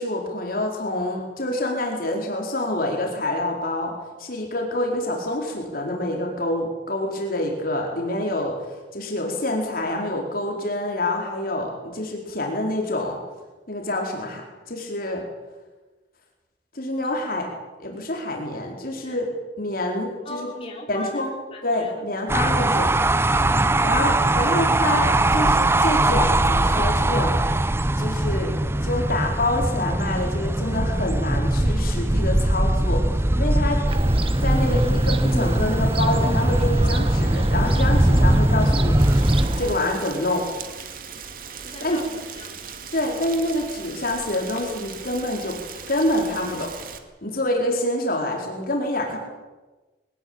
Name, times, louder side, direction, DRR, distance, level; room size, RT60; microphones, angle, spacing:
voice 1, 0.0-8.5 8.9-13.2 13.7-15.2 16.7-17.5 17.8-19.3 19.6-20.5 20.9-21.3 21.6-22.9 23.8-27.4 28.0-33.0 33.4-33.8 34.4-39.0 39.6-40.5 41.8-42.0 42.9-45.6 45.9-46.8 47.2-49.2, left 1 dB, 55° left, 1 dB, 4.6 m, -27 dB
voice 2, 20.2-22.0 23.3-23.8 41.6-42.6, left 1 dB, 35° left, -1 dB, 4.9 m, -37 dB
sound 1, 22.3-39.5, right 1 dB, 15° right, 0.7 m, -20 dB
Fowl / Gull seagull, 33.9-39.7, right 1 dB, 30° right, 1.1 m, -28 dB
Rain, 39.0-47.0, right 6 dB, 55° right, 2.3 m, -39 dB
22.5 x 19.0 x 8.9 m, 1.2 s
head